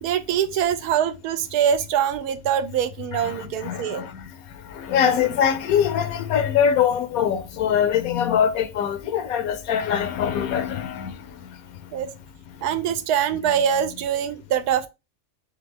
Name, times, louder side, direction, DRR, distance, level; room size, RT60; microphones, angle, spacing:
voice 1, 0.0-4.0 11.9-12.1 12.6-14.9, right 9 dB, 80° right, 1.1 m, -23 dB
voice 2, 3.1-4.3 4.6-11.2, left 8 dB, 70° left, 1.0 m, -23 dB
3.5 x 3.4 x 3.4 m
omnidirectional pair, 1.6 m